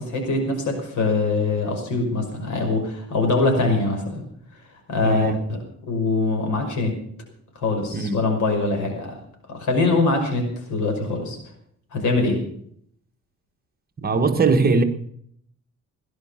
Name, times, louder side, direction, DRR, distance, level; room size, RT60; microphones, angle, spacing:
voice 1, 0.0-4.2 4.9-5.6 5.9-6.9 7.5-9.2 9.5-11.4 11.9-12.4, left 3 dB, 80° left, 5.9 m, -23 dB
voice 2, 5.0-5.4 7.9-8.2 14.0-14.8, right 4 dB, 30° right, 1.5 m, -20 dB
17.5 x 11.5 x 5.8 m
cardioid pair, 150°, 30 cm